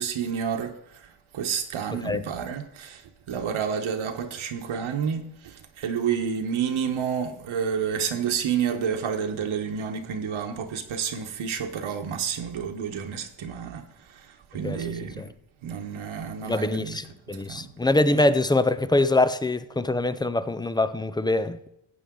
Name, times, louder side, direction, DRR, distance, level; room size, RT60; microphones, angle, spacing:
voice 1, 0.0-15.3 15.6-17.7, right 7 dB, 70° right, 1.3 m, -30 dB
voice 2, 16.4-21.7, left 2 dB, 10° left, 0.3 m, -24 dB
15.0 x 8.3 x 3.8 m
cardioid pair, 120°, 49 cm